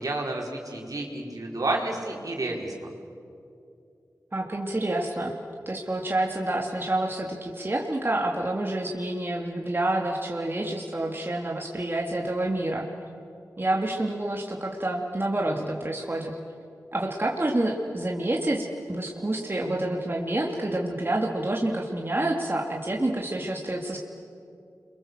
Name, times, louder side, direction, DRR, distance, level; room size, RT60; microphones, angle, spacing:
voice 1, 0.0-2.7, right 2 dB, 70° right, -1 dB, 4.6 m, -30 dB
voice 2, 4.3-5.3 5.7-12.9 13.6-16.4 16.9-24.0, right 1 dB, 35° right, -1 dB, 2.8 m, -28 dB
30.0 x 23.5 x 7.7 m, 2.6 s
cardioid pair, 45°, 6 cm